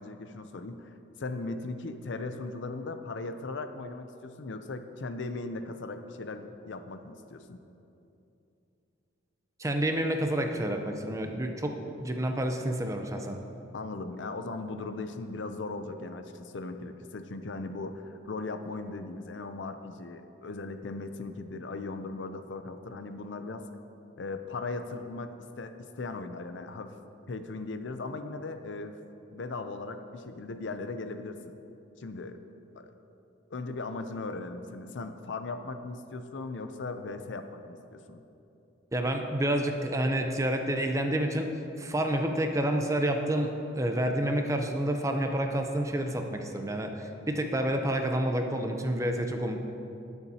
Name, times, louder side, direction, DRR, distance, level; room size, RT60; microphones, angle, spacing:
voice 1, 0.0-7.6 13.7-23.6 24.2-27.0 27.3-29.0 29.3-31.6 32.0-32.4 32.7-32.9 33.5-38.2, left 3 dB, 65° left, 8 dB, 0.5 m, -38 dB
voice 2, 9.6-13.4 38.9-41.5 41.8-49.6, right 1 dB, 15° right, 4 dB, 0.6 m, -29 dB
20.0 x 7.0 x 2.8 m, 2.8 s
head